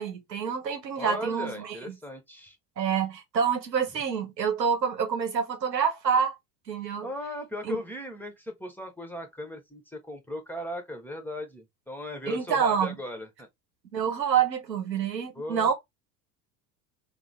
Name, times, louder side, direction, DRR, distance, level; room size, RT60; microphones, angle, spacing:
voice 1, 0.0-2.0 2.8-6.4 6.7-7.1 7.6-7.8 12.3-12.9 13.9-15.7, right 7 dB, 80° right, 0.9 m, -27 dB
voice 2, 1.0-2.6 7.0-13.5 15.3-15.7, left 1 dB, 5° left, 0.8 m, -37 dB
3.7 x 2.0 x 3.2 m
figure-of-eight pair, 65°, 50 cm